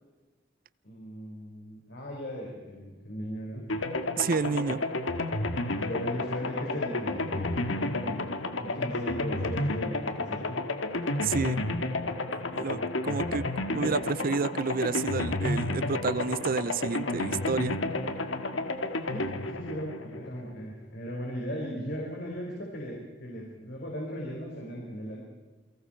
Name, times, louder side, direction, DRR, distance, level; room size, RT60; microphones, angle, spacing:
voice 1, 0.8-3.6 4.5-4.6 5.7-8.2 8.6-10.6 12.7-12.9 19.1-25.2, equal, 60° left, -2 dB, 5.3 m, -37 dB
sound 1, 3.7-20.6, left 2 dB, 85° left, 1.8 m, -31 dB
voice 2, 4.2-4.8 11.2-11.6 12.5-13.4 13.7-17.8, right 4 dB, 45° right, 17 dB, 0.6 m, -30 dB
29.5 x 23.5 x 4.6 m, 1.3 s
head